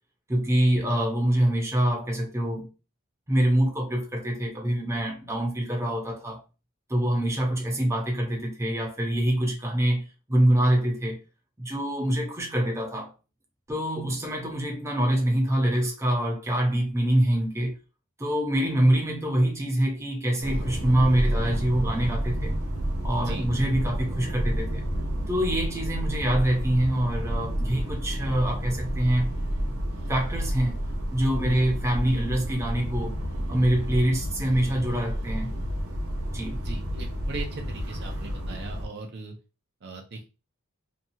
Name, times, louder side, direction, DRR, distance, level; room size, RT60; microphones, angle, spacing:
voice 1, 0.3-2.7 3.3-6.4 6.9-11.2 11.6-13.1 13.7-17.7 18.2-22.6 23.0-24.9 25.3-29.3 30.1-30.8 31.1-33.2 33.5-35.5 36.3-36.6, right 1 dB, 15° right, 0.7 m, -25 dB
sound 1, 20.4-38.9, equal, 90° right, 0.9 m, -30 dB
voice 2, 36.6-39.4 39.8-40.3, right 3 dB, 50° right, 0.6 m, -38 dB
2.8 x 2.3 x 2.7 m
head